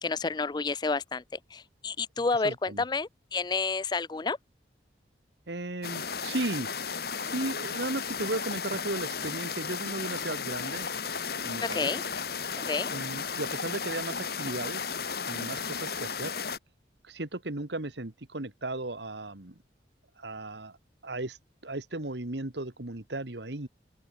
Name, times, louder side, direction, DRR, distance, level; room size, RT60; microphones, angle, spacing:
voice 1, 0.0-1.2 1.5-4.4 11.7-12.0 12.7-12.9, left 4 dB, 25° left, 0.4 m, -30 dB
voice 2, 2.4-2.8 5.5-6.7 7.2-10.9 11.4-11.9 12.9-14.9 15.2-16.3 17.1-19.5 20.2-20.8 21.0-21.4 21.6-23.7, right 2 dB, 70° right, 1.8 m, -35 dB
sound 1, 5.8-16.6, left 6 dB, 55° left, 2.1 m, -34 dB
open air
head